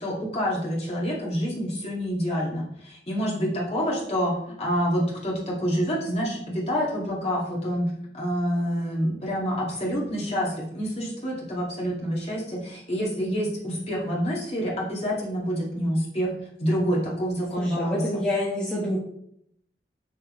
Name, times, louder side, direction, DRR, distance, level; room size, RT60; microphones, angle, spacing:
voice 1, 0.0-16.3 16.6-18.2, equal, 35° left, -4 dB, 2.1 m, -27 dB
voice 2, 17.5-19.0, left 1 dB, 5° left, -6 dB, 1.2 m, -27 dB
6.4 x 6.3 x 3.2 m, 0.71 s
head